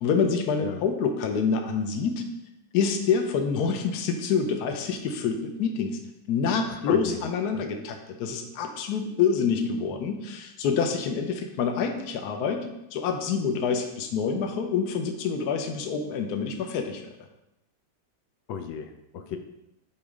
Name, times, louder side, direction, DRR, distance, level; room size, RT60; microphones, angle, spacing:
voice 1, 0.0-2.2 2.7-6.0 6.3-12.7 12.9-17.1, left 6 dB, 65° left, 5 dB, 1.3 m, -27 dB
voice 2, 6.7-7.2 7.5-7.9 18.5-19.4, left 6 dB, 85° left, 6 dB, 1.4 m, -34 dB
8.7 x 4.1 x 5.3 m, 0.89 s
omnidirectional pair, 2.0 m